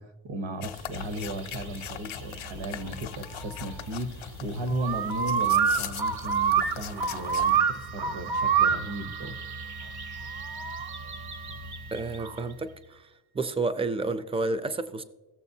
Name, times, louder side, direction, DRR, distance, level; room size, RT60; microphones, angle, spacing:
voice 1, 0.0-9.3, right 1 dB, 70° right, 8 dB, 1.1 m, -35 dB
sound 1, 0.6-7.6, left 10 dB, 80° left, 0.5 m, -41 dB
sound 2, 1.0-12.5, right 7 dB, 55° right, 0.8 m, -29 dB
Wind instrument woodwind instrument, 6.7-12.6, right 7 dB, 85° right, 1.4 m, -45 dB
voice 2, 11.9-13.1 13.3-15.0, right 3 dB, 15° right, 11 dB, 0.3 m, -30 dB
16.0 x 7.0 x 2.7 m, 1.2 s
wide cardioid pair, 160°, 47 cm